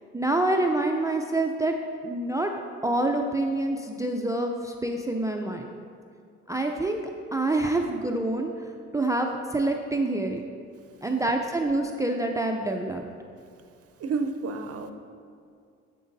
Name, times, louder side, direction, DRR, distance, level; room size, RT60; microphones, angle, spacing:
voice 1, 0.1-1.7 2.0-2.5 2.8-5.7 6.5-7.0 7.3-10.4 11.0-13.0, right 2 dB, 10° right, 3 dB, 0.4 m, -26 dB
voice 2, 14.0-14.9, right 4 dB, 50° right, 7 dB, 0.6 m, -30 dB
9.1 x 7.9 x 2.6 m, 2.3 s
cardioid pair, 90°, 30 cm